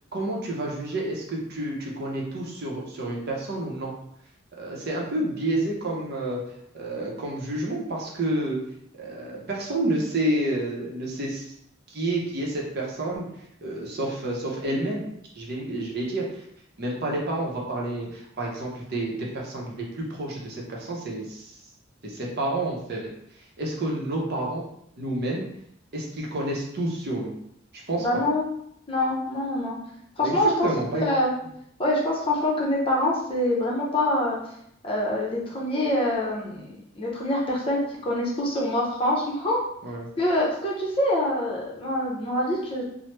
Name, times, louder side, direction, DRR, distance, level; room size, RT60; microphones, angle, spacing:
voice 1, 0.1-3.9 4.6-6.4 6.7-8.6 9.0-11.5 11.9-13.3 13.6-15.0 15.3-16.4 16.8-21.5 22.0-23.1 23.6-24.6 25.0-25.5 25.9-27.3 27.7-28.1 30.2-31.1 39.8-40.1, right 1 dB, 55° right, -2 dB, 0.7 m, -29 dB
voice 2, 28.0-28.4 28.9-29.8 30.2-31.3 31.8-34.4 34.8-39.6 40.2-42.8, left 1 dB, 30° left, -4 dB, 0.7 m, -25 dB
3.0 x 2.0 x 3.1 m, 0.73 s
head